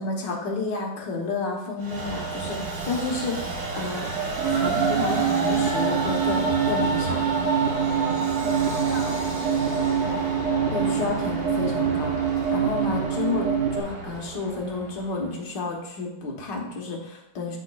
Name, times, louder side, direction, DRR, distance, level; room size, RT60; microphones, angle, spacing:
voice 1, 0.0-4.1 4.4-7.2 10.7-17.6, left 3 dB, 70° left, 0 dB, 1.8 m, -31 dB
Train, 1.8-15.3, right 3 dB, 55° right, 1.9 m, -30 dB
sound 1, 4.4-13.8, right 8 dB, 85° right, 0.6 m, -25 dB
voice 2, 8.3-10.4, left 2 dB, 45° left, -2 dB, 2.0 m, -44 dB
12.5 x 4.3 x 2.3 m, 0.84 s
omnidirectional pair, 2.1 m